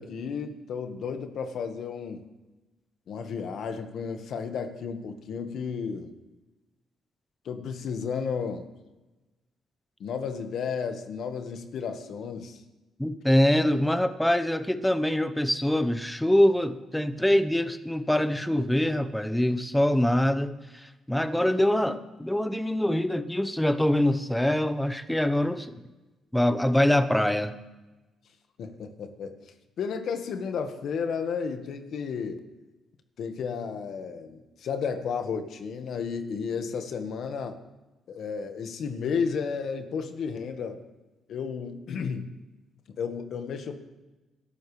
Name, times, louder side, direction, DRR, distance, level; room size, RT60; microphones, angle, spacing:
voice 1, 0.0-2.2 3.1-6.1 7.4-8.7 10.0-12.6 28.6-29.4 29.8-32.4 33.2-37.6 38.1-40.8 41.3-42.3 42.9-43.8, left 6 dB, 70° left, 7 dB, 1.6 m, -33 dB
voice 2, 13.0-25.7 26.3-27.6, left 1 dB, 5° left, 11 dB, 1.0 m, -24 dB
23.0 x 12.5 x 3.4 m, 1.1 s
cardioid pair, 90°, 0 cm